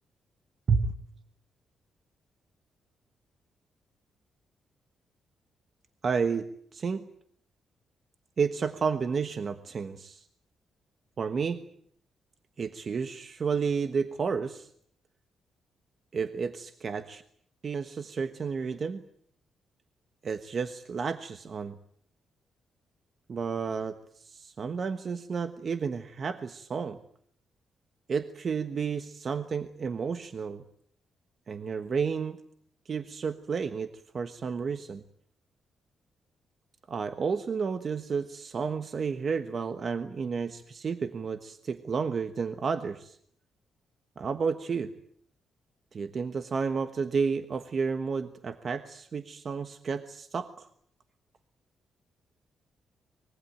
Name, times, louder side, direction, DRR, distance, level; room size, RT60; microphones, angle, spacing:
voice 1, 6.0-7.0 8.4-10.3 11.2-11.6 12.6-14.7 16.1-17.2 17.6-19.0 20.2-21.8 23.3-27.0 28.1-30.6 31.5-32.4 32.9-33.9 34.1-35.0 36.9-43.2 44.2-44.9 45.9-50.7, right 5 dB, 40° right, 10 dB, 1.2 m, -31 dB
24.5 x 22.0 x 9.1 m, 0.66 s
cardioid pair, 135°, 0 cm